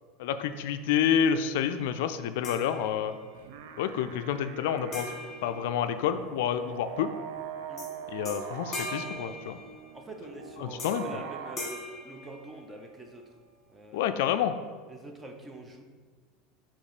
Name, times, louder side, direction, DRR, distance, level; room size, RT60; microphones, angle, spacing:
voice 1, 0.2-3.2 3.8-5.1 5.4-7.1 8.1-9.6 10.6-11.0 13.9-14.5, left 9 dB, 75° left, 10 dB, 0.3 m, -28 dB
sound 1, 2.4-3.4 4.9-6.5 7.8-7.9 8.2-10.1 10.8-11.2 11.6-13.0, left 2 dB, 25° left, 1.8 m, -41 dB
sound 2, 3.3-11.6, right 8 dB, 75° right, 0.4 m, -42 dB
voice 2, 9.9-13.2 13.7-14.3 14.9-15.8, right 2 dB, 15° right, 3 dB, 0.8 m, -45 dB
6.4 x 3.0 x 4.9 m, 1.5 s
supercardioid pair, 115°, 0 cm